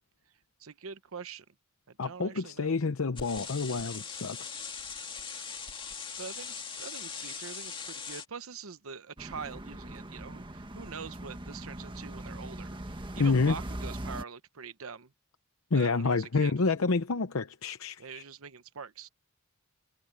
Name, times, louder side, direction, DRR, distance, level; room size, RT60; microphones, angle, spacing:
voice 1, 0.6-1.4 1.9-2.7 5.5-5.6 6.2-15.1 15.7-16.5 18.0-19.1, right 6 dB, 80° right, 0.9 m, -44 dB
voice 2, 2.0-4.4 13.2-13.6 15.7-18.2, left 4 dB, 75° left, 0.8 m, -28 dB
sound 1, 3.2-8.3, left 6 dB, 25° left, 2.2 m, -40 dB
sound 2, 9.2-14.2, right 1 dB, 25° right, 1.5 m, -41 dB
head